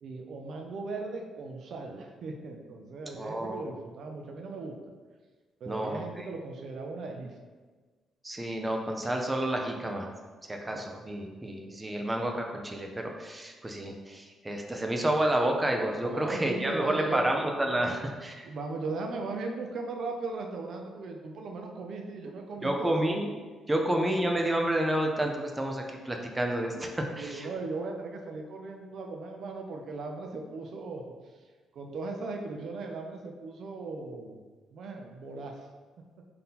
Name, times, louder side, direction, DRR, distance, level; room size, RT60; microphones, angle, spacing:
voice 1, 0.0-4.8 5.6-7.4 10.7-10.8 16.0-17.3 17.9-18.1 18.4-23.1 27.1-31.0 31.7-34.4 34.7-35.6, right 3 dB, 65° right, 2 dB, 0.5 m, -38 dB
voice 2, 3.1-3.6 5.7-6.3 8.2-10.1 10.5-18.5 22.6-23.3 23.7-27.5, right 1 dB, 15° right, 2 dB, 0.5 m, -30 dB
3.7 x 2.8 x 4.0 m, 1.4 s
cardioid pair, 90°, 0 cm